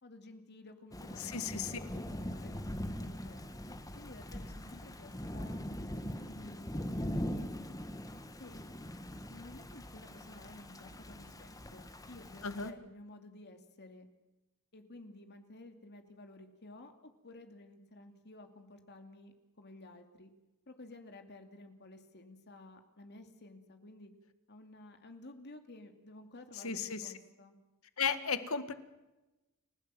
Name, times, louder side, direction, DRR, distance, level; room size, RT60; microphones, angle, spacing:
voice 1, 0.0-3.4 3.9-7.8 8.3-8.6 9.3-14.1 14.7-20.3 20.7-24.1 24.5-27.6, left 2 dB, 50° left, 6 dB, 2.4 m, -53 dB
Thunder / Rain, 0.9-12.7, equal, 15° left, 1.5 m, -42 dB
voice 2, 1.2-1.8 12.4-12.7 26.6-27.1 28.0-28.7, left 6 dB, 70° left, 11 dB, 1.8 m, -35 dB
30.0 x 17.0 x 7.6 m, 1.0 s
head